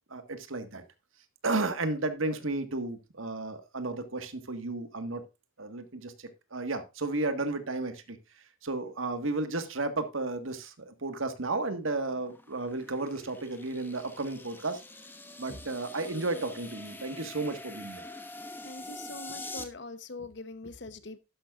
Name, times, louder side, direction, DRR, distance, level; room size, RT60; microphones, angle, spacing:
voice 1, 0.1-0.8 1.4-5.2 5.6-14.8 15.4-18.0, right 2 dB, 80° right, 1.7 m, -33 dB
sound 1, 11.7-19.6, left 2 dB, 10° left, 1.1 m, -45 dB
voice 2, 18.6-21.2, left 3 dB, 60° left, 0.9 m, -43 dB
12.0 x 10.5 x 2.5 m
head